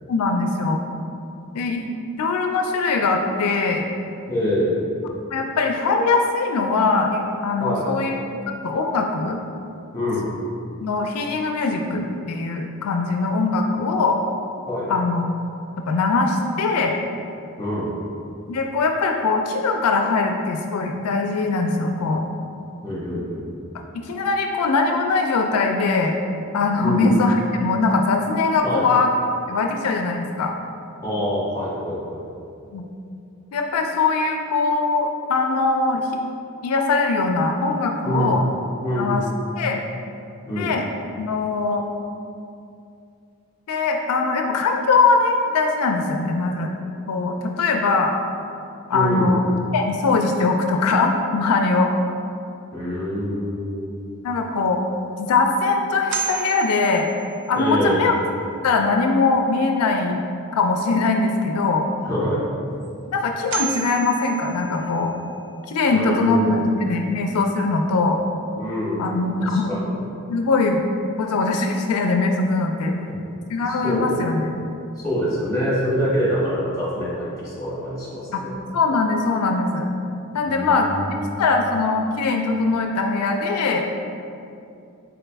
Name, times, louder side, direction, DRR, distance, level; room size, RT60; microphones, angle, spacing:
voice 1, 0.1-0.8 1.5-1.8 2.2-3.8 5.3-8.1 8.5-9.4 10.8-14.2 14.9-15.3 15.9-17.0 18.5-22.2 23.9-26.1 26.5-29.1 29.5-30.5 32.7-32.8 33.5-36.1 36.6-38.4 39.0-39.2 39.6-39.8 40.6-40.9 41.2-41.8 43.7-46.7 47.1-48.2 48.9-49.4 49.7-51.9 54.2-54.8 55.2-57.1 57.5-58.2 58.6-60.2 60.5-61.8 63.1-65.1 65.7-68.2 69.0-69.7 70.3-70.8 71.2-72.9 73.5-74.5 78.3-78.4 78.7-79.9 80.3-80.9 81.4-83.9, left 3 dB, 85° left, 3 dB, 0.4 m, -21 dB
voice 2, 4.3-4.8 7.6-7.9 9.9-10.3 14.7-14.9 17.6-17.9 22.8-23.5 26.8-27.1 28.6-28.8 31.0-32.2 38.0-38.4 38.8-39.2 40.4-40.7 48.9-49.4 52.7-53.9 57.5-58.1 62.0-62.4 65.9-66.6 68.6-69.1 69.5-70.0 72.8-73.2 73.6-74.2 75.0-78.6 80.4-81.7, equal, 15° left, -8 dB, 1.4 m, -25 dB
sound 1, 54.7-54.8 55.3-55.4 56.1-57.7 62.8-62.9 63.5-65.2, right 8 dB, 55° right, 0.4 m, -32 dB
4.0 x 3.9 x 3.3 m, 2.5 s
head